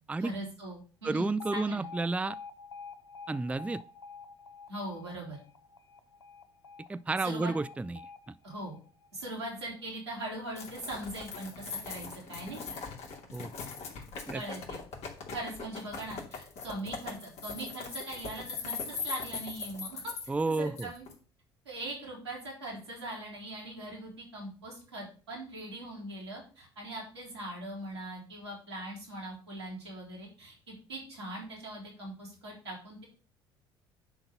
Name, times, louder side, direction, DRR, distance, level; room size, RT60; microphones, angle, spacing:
voice 1, 0.2-1.8 4.7-5.4 7.2-7.5 8.4-8.8 9.1-12.8 14.3-14.8 15.3-20.1 20.5-21.0 21.6-33.1, right 1 dB, 85° right, -4 dB, 4.2 m, -41 dB
voice 2, 1.0-2.4 3.3-3.8 6.9-8.0 13.3-13.5 14.3-14.4 20.3-20.9, right 3 dB, 10° right, 16 dB, 0.4 m, -31 dB
Alarm, 1.4-9.4, left 5 dB, 90° left, 0.4 m, -48 dB
sound 1, 10.6-21.1, left 5 dB, 55° left, 2.9 m, -40 dB
10.5 x 3.9 x 6.8 m, 0.38 s
figure-of-eight pair, 55°, 13 cm